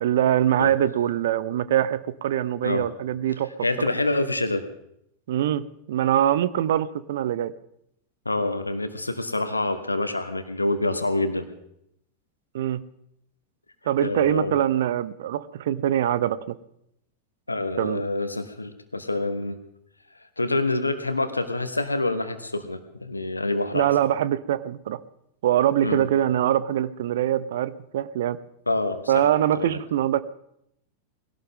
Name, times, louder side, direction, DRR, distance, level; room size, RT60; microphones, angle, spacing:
voice 1, 0.0-3.5 5.3-7.5 12.5-12.8 13.9-16.6 17.8-18.0 23.7-25.0 25.4-28.4 29.1-30.2, right 11 dB, 55° right, 17 dB, 0.7 m, -23 dB
voice 2, 3.6-4.6 8.2-11.5 14.0-14.6 17.5-19.6 20.4-23.9 25.8-26.0 28.7-29.3 29.5-29.8, left 2 dB, 80° left, 10 dB, 1.4 m, -26 dB
21.0 x 17.0 x 3.7 m, 0.76 s
figure-of-eight pair, 90°, 0 cm